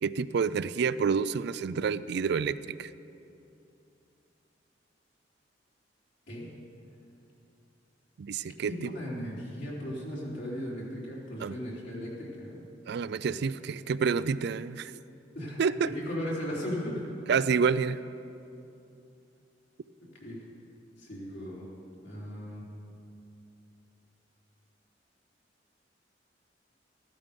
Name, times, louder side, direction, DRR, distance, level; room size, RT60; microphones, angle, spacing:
voice 1, 0.0-2.9 8.2-8.9 11.4-11.5 12.9-14.9 15.6-15.9 17.3-18.0, right 5 dB, 65° right, 16 dB, 0.4 m, -28 dB
voice 2, 8.7-12.6 15.3-15.6 15.9-17.0 20.2-20.4 21.0-21.7 22.0-22.7, equal, 75° left, -5 dB, 3.8 m, -36 dB
15.0 x 12.5 x 5.3 m, 2.7 s
head